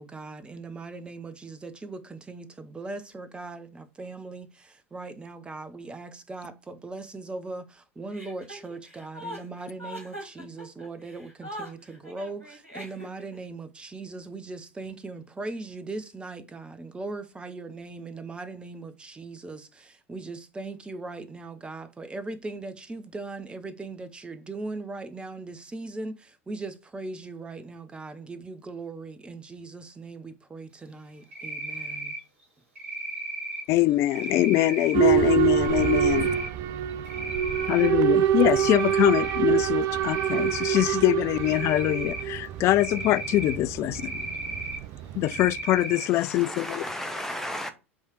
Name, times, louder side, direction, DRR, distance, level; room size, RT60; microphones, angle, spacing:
voice 1, 0.0-32.2, right 3 dB, 15° right, 0.7 m, -39 dB
Chuckle chortle, 8.1-13.4, equal, 90° right, 1.7 m, -41 dB
Cricket, 31.3-32.2 32.8-33.6 34.1-34.9 35.6-36.5 36.9-37.9 38.2-39.4 40.0-40.8 41.3-42.2 42.7-43.5 43.9-44.8 45.2-46.0, right 2 dB, 70° right, 2.6 m, -35 dB
voice 2, 33.7-36.3 37.7-44.1 45.1-46.8, left 15 dB, 40° left, 0.4 m, -23 dB
Boat Water vehicle / Alarm, 34.9-45.6, right 10 dB, 45° right, 0.6 m, -26 dB
voice 3, 46.0-47.7, equal, 5° left, 1.1 m, -35 dB
8.3 x 3.2 x 4.6 m
figure-of-eight pair, 75°, 7 cm